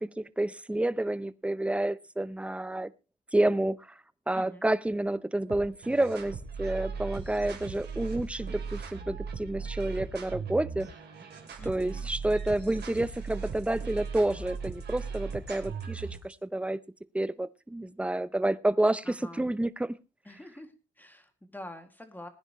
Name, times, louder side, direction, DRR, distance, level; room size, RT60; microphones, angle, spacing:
voice 1, 0.0-2.9 3.3-3.9 4.3-10.9 11.7-16.8 17.1-19.9, right 1 dB, 5° right, 0.6 m, -29 dB
voice 2, 4.3-4.7 11.6-12.1 19.0-19.5 20.2-22.3, left 1 dB, 10° left, 2.3 m, -46 dB
sound 1, 5.5-16.3, right 5 dB, 55° right, 3.2 m, -38 dB
20.0 x 10.0 x 3.1 m
cardioid pair, 90°, 20 cm